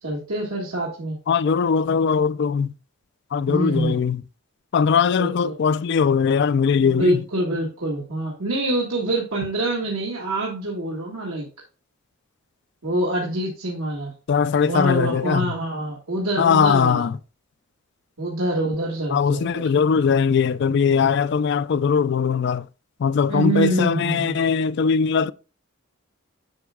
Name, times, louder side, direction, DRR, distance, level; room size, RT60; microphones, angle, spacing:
voice 1, 0.0-1.2 3.5-4.0 5.2-5.5 6.8-11.5 12.8-14.1 14.6-17.1 18.2-19.6 23.3-24.4, right 1 dB, 80° right, 1.9 m, -25 dB
voice 2, 1.3-2.7 3.3-4.2 4.7-7.2 14.3-15.5 16.4-17.2 19.1-22.7 23.0-25.3, left 6 dB, 50° left, 0.3 m, -20 dB
9.3 x 6.1 x 2.3 m
head